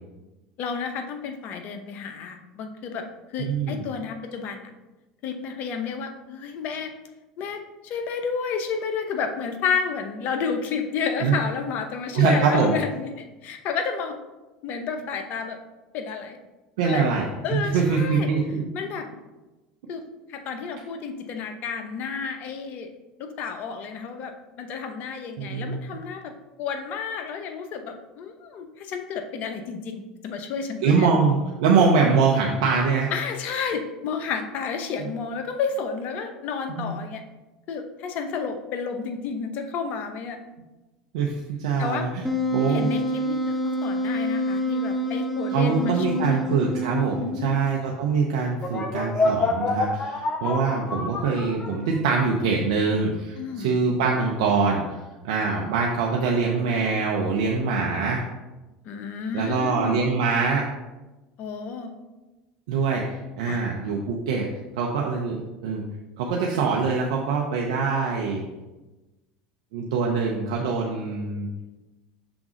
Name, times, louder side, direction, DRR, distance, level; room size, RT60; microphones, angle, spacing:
voice 1, 0.6-4.7 5.2-6.9 7.4-14.2 14.6-15.6 15.9-16.4 16.8-17.1 17.4-18.3 18.7-19.1 19.9-20.0 20.3-22.9 23.2-26.3 26.6-31.1 33.1-37.2 37.7-40.4 41.8-42.1 42.7-46.4 47.2-47.7 53.4-53.8 58.8-60.0 61.4-61.9 63.5-63.6, left 5 dB, 55° left, 7 dB, 0.8 m, -31 dB
voice 2, 3.5-3.8 11.2-11.3 12.1-12.7 16.8-17.2 17.5-18.7 25.4-25.8 30.8-33.1 36.7-36.9 41.1-41.3 41.6-42.2 42.5-42.9 45.5-54.8 55.2-58.2 59.3-60.6 62.7-64.5 64.8-65.8 66.2-68.4 69.7-71.5, right 5 dB, 75° right, -1 dB, 0.7 m, -23 dB
Wind instrument woodwind instrument, 42.2-47.7, equal, ahead, 0.7 m, -27 dB
sound 1, 48.6-52.1, left 2 dB, 30° left, 1.0 m, -26 dB
6.1 x 3.6 x 4.9 m, 1.1 s
hypercardioid pair, 90°, 3 cm